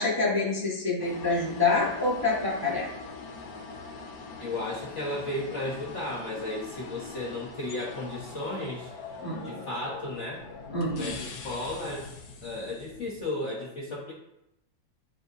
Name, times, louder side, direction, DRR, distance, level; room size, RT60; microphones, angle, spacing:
voice 1, 0.0-2.9 9.2-9.6 10.7-11.2, left 3 dB, 15° right, -6 dB, 0.9 m, -27 dB
sound 1, 1.0-13.2, left 4 dB, 75° left, 1.6 m, -43 dB
voice 2, 4.4-8.9 9.4-10.4 10.9-12.1 12.4-14.1, left 1 dB, 50° left, -3 dB, 1.0 m, -34 dB
10.5 x 3.9 x 2.6 m, 0.85 s
omnidirectional pair, 2.1 m